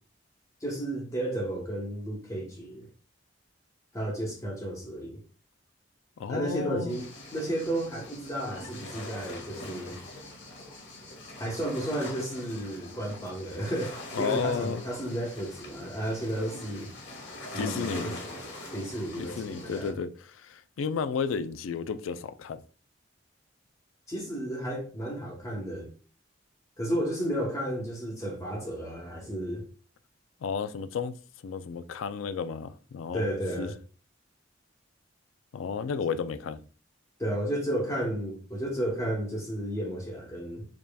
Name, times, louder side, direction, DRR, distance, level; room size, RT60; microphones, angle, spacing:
voice 1, 0.6-2.9 3.9-5.2 6.3-9.9 11.4-16.9 17.5-18.4 18.7-19.9 24.1-25.9 26.8-29.6 33.1-33.7 37.2-40.7, right 1 dB, 15° left, 0.9 m, -33 dB
voice 2, 6.2-7.0 14.1-14.8 17.5-18.2 19.2-22.6 30.4-31.2 31.4-33.3 33.6-33.7 35.5-36.6, left 5 dB, 80° left, 0.4 m, -32 dB
sound 1, 6.9-19.9, left 1 dB, 60° left, 1.3 m, -43 dB
5.1 x 2.8 x 2.2 m
head